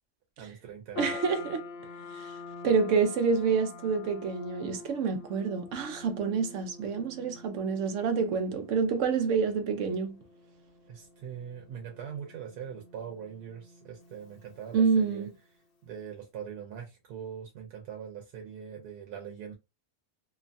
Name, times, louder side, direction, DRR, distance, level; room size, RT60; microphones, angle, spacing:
voice 1, 0.4-1.0 10.9-15.3 15.8-19.5, right 8 dB, 85° right, 1.2 m, -42 dB
sound 1, 0.9-15.4, left 4 dB, 45° left, 0.8 m, -46 dB
voice 2, 1.0-1.6 2.1-2.3 2.6-10.2 14.7-15.3, right 5 dB, 65° right, 0.8 m, -28 dB
3.0 x 2.1 x 2.6 m
omnidirectional pair, 1.6 m